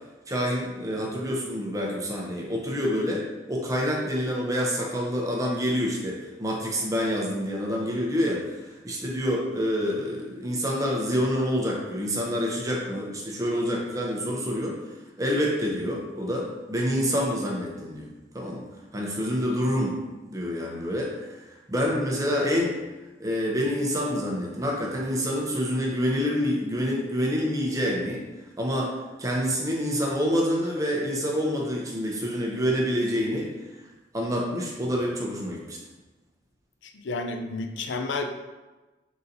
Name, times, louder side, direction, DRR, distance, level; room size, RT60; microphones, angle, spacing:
voice 1, 0.3-3.2 3.5-8.4 8.8-14.8 15.2-18.1 18.3-18.6 18.9-20.0 20.3-21.4 21.7-22.8 23.2-28.2 28.6-28.9 29.2-33.5 34.1-35.8, equal, 20° right, -2 dB, 0.7 m, -27 dB
voice 2, 36.8-38.2, left 3 dB, 85° left, 6 dB, 0.4 m, -31 dB
3.9 x 3.8 x 2.7 m, 1.1 s
head